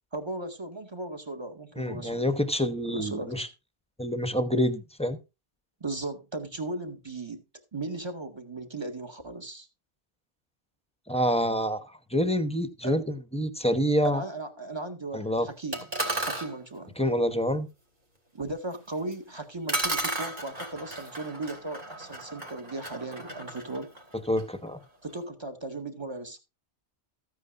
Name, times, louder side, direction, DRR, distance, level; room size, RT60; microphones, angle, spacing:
voice 1, 0.1-2.2 2.9-3.5 5.8-7.4 7.7-9.7 12.8-13.0 14.0-15.9 16.2-16.9 18.3-23.9 25.0-26.4, right 2 dB, 25° right, 1.7 m, -36 dB
voice 2, 1.8-3.5 4.0-5.2 11.1-11.8 12.1-14.2 15.1-15.5 17.0-17.7 24.3-24.8, equal, 5° left, 0.9 m, -27 dB
sound 1, 15.7-16.5 19.1-19.2 19.7-24.5, right 2 dB, 40° right, 2.9 m, -34 dB
14.5 x 9.4 x 2.5 m
omnidirectional pair, 1.2 m